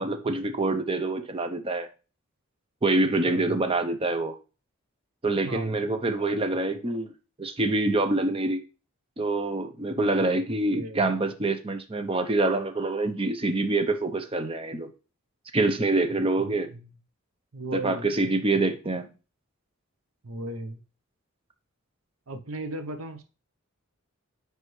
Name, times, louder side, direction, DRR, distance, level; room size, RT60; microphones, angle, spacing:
voice 1, 0.0-1.9 2.8-4.4 5.2-7.1 7.4-8.6 9.2-14.9 15.5-16.7 17.7-19.1, right 2 dB, 25° right, 0.6 m, -26 dB
voice 2, 3.0-3.6 5.4-5.8 10.7-11.0 16.4-16.9 17.5-18.1 20.2-20.8 22.3-23.2, right 2 dB, 85° right, 0.8 m, -36 dB
9.5 x 3.3 x 3.1 m
head